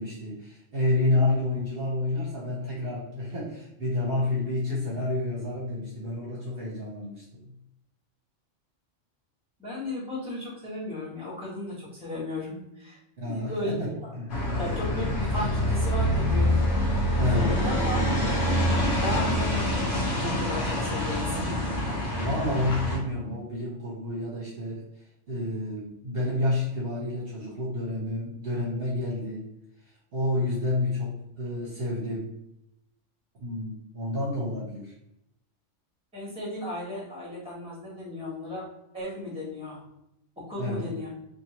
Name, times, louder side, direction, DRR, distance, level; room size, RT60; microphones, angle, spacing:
voice 1, 0.0-7.5 13.2-14.3 17.2-17.6 22.1-24.8 25.3-29.5 30.1-32.3 33.4-34.9 40.6-40.9, left 2 dB, 55° right, -5 dB, 1.0 m, -29 dB
voice 2, 9.6-13.8 14.0-14.1 14.6-16.5 17.3-18.0 19.0-21.8 36.1-38.6 38.9-39.8 40.4-41.1, left 1 dB, 5° right, -7 dB, 1.2 m, -35 dB
sound 1, 14.3-23.0, equal, 50° left, 0.9 m, -26 dB
2.8 x 2.6 x 2.9 m, 0.82 s
omnidirectional pair, 1.3 m